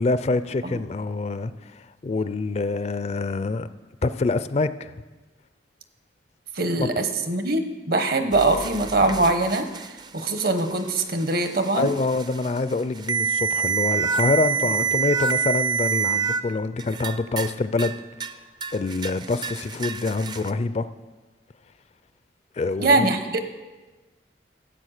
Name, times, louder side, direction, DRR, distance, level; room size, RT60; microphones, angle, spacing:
voice 1, 0.0-3.7 4.0-4.9 6.8-6.9 11.8-17.9 18.7-20.9 22.6-23.1, left 3 dB, 35° left, 13 dB, 0.4 m, -26 dB
voice 2, 6.5-9.8 10.1-11.9 22.8-23.4, right 2 dB, 55° right, 8 dB, 1.1 m, -22 dB
sound 1, 8.3-16.4 16.8-17.5 17.8-18.3 18.6-20.5, right 6 dB, 25° right, 0.4 m, -27 dB
12.5 x 8.2 x 6.5 m, 1.2 s
head